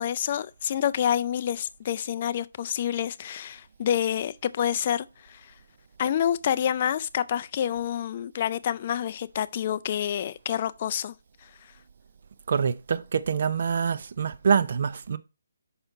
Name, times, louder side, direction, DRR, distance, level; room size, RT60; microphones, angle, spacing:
voice 1, 0.0-5.4 6.0-11.2, left 10 dB, 35° left, 0.4 m, -28 dB
voice 2, 12.5-15.2, right 6 dB, 50° right, 0.5 m, -25 dB
5.7 x 5.5 x 3.4 m
hypercardioid pair, 165°, 0 cm